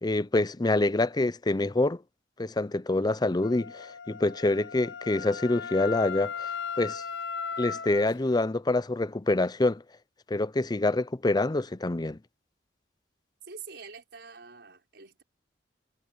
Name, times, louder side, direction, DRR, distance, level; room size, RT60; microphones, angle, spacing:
voice 1, 0.0-2.0 2.4-6.3 6.8-7.0 7.6-9.8 10.3-12.2, left 2 dB, 25° left, 0.6 m, -26 dB
Wind instrument woodwind instrument, 3.4-8.1, left 6 dB, 90° left, 0.6 m, -37 dB
voice 2, 13.4-15.2, right 5 dB, 70° right, 6.1 m, -46 dB
head